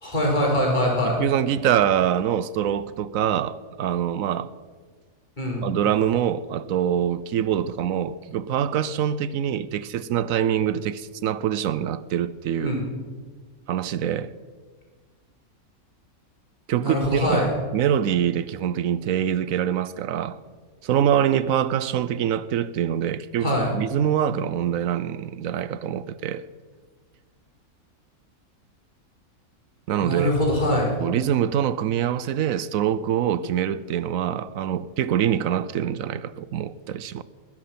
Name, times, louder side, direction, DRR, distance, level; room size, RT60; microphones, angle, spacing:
voice 1, 0.0-1.2 5.4-5.6 12.6-12.8 16.8-17.5 23.4-23.7 30.0-31.0, equal, 30° left, 4.6 m, -23 dB
voice 2, 1.2-4.5 5.6-12.7 13.7-14.3 16.7-20.4 20.8-23.5 23.7-26.4 29.9-30.3 31.0-37.2, right 9 dB, 75° right, 1.0 m, -24 dB
20.0 x 11.0 x 5.9 m
omnidirectional pair, 1.5 m